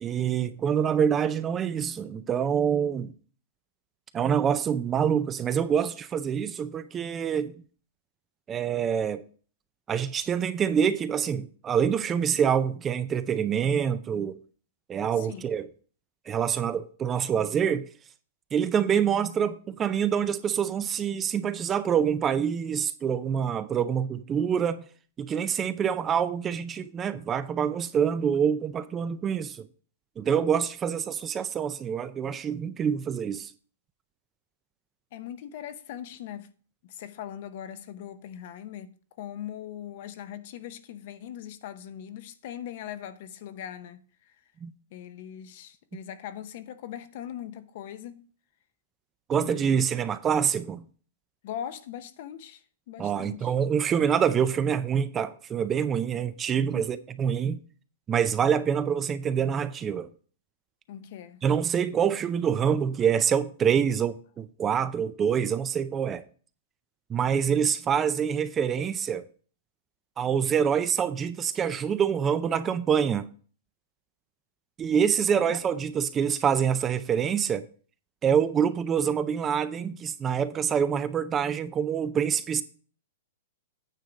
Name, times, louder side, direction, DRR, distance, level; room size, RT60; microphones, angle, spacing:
voice 1, 0.0-3.1 4.1-7.5 8.5-9.2 9.9-14.4 14.9-15.7 16.3-17.9 18.5-24.9 25.2-29.7 30.2-33.5 44.6-44.7 49.3-50.9 53.0-57.6 58.1-60.1 61.4-66.2 67.1-69.2 70.2-73.3 74.8-77.6 78.2-82.6, right 7 dB, 20° right, 0.4 m, -26 dB
voice 2, 15.1-15.5 35.1-36.5 36.8-44.0 44.9-48.3 49.3-49.8 51.4-53.5 56.7-57.0 60.9-61.4 75.3-75.5, left 10 dB, 50° left, 0.7 m, -40 dB
9.1 x 3.7 x 7.0 m
hypercardioid pair, 150°, 0 cm